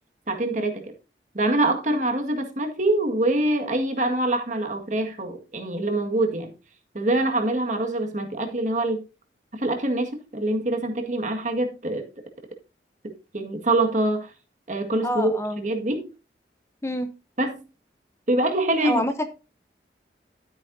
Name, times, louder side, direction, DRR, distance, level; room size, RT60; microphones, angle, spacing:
voice 1, 0.3-0.8 1.3-6.5 6.9-9.0 9.5-12.1 13.3-14.3 14.7-15.3 15.6-16.1 17.4-17.6 18.3-19.0, right 2 dB, 45° right, 1.8 m, -24 dB
voice 2, 15.0-15.6 16.8-17.1 18.8-19.3, equal, 15° left, 0.7 m, -27 dB
13.0 x 8.8 x 2.7 m
head